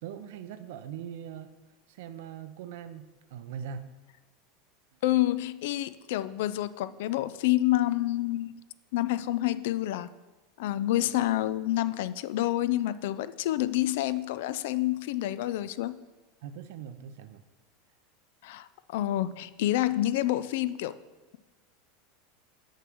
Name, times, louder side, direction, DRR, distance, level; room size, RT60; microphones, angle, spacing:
voice 1, 0.0-1.5 1.9-3.9 16.4-17.4, right 8 dB, 70° right, 11 dB, 0.7 m, -41 dB
voice 2, 5.0-8.5 8.9-10.1 10.6-15.9 18.4-20.9, left 14 dB, 70° left, 14 dB, 0.4 m, -28 dB
6.6 x 6.2 x 6.1 m, 1.3 s
supercardioid pair, 155°, 0 cm